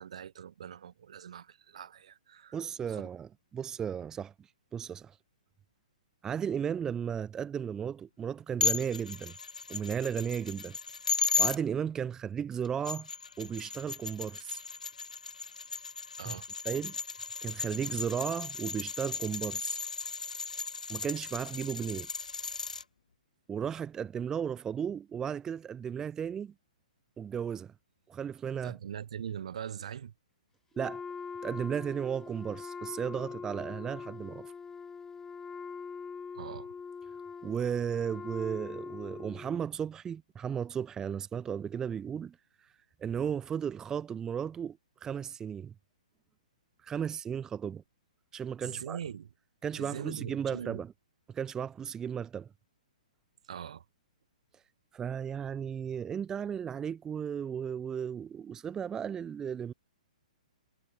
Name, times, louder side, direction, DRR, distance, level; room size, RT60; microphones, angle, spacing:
voice 1, 0.0-2.6 2.8-3.1 16.2-16.5 28.6-30.1 36.3-36.7 48.6-49.3 49.7-50.8 53.4-53.8, right 9 dB, 55° right, 2.5 m, -42 dB
voice 2, 2.5-5.2 6.2-9.3 9.7-10.8 11.4-13.1 13.4-14.6 16.3-16.4 16.7-17.0 17.4-19.8 20.9-22.1 23.5-26.5 27.2-27.7 28.1-28.8 30.8-31.0 31.4-34.5 37.4-42.7 43.0-45.7 46.8-47.8 48.3-49.0 49.6-50.9 51.3-52.5 54.9-59.7, right 8 dB, 15° right, 0.6 m, -35 dB
sound 1, 8.6-11.6 12.6-22.8, left 5 dB, 75° left, 0.4 m, -35 dB
Wind instrument woodwind instrument, 30.7-39.6, left 5 dB, 10° left, 2.3 m, -43 dB
figure-of-eight pair, 120°, 4 cm